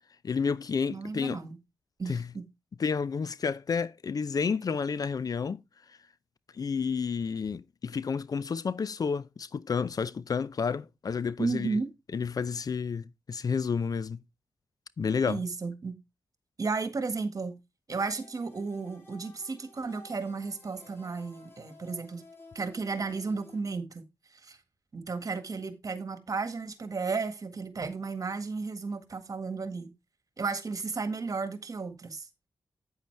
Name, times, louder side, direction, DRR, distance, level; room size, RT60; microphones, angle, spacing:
voice 1, 0.2-1.4 2.1-2.3 2.8-5.6 5.9-6.0 6.5-11.8 12.1-14.2 15.0-15.4, left 5 dB, 55° left, 0.5 m, -30 dB
voice 2, 0.9-1.6 2.0-2.5 11.4-11.9 15.3-16.0 16.6-17.6 17.9-22.2 22.5-24.0 24.4-24.6 24.9-29.9 30.4-32.3, right 4 dB, 50° right, 1.7 m, -33 dB
sound 1, 17.9-23.6, left 2 dB, 30° left, 2.8 m, -54 dB
9.1 x 8.2 x 3.3 m
cardioid pair, 50°, 8 cm